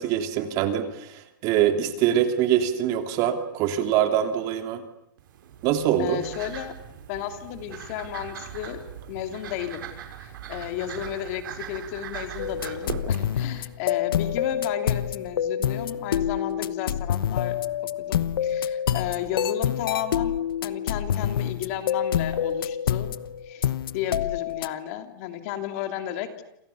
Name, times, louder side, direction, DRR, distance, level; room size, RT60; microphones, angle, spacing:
voice 1, 0.0-4.8 5.6-6.2, right 10 dB, 30° right, 7 dB, 2.9 m, -24 dB
sound 1, 5.2-13.6, right 9 dB, 70° right, 6.6 m, -40 dB
voice 2, 6.0-6.7 7.1-8.8 9.1-9.9 10.2-20.3 20.6-23.1 23.4-26.4, left 11 dB, 40° left, 7 dB, 2.9 m, -33 dB
sound 2, 12.4-24.7, left 9 dB, 85° left, 1.1 m, -27 dB
29.0 x 28.5 x 7.1 m, 0.78 s
supercardioid pair, 165°, 12 cm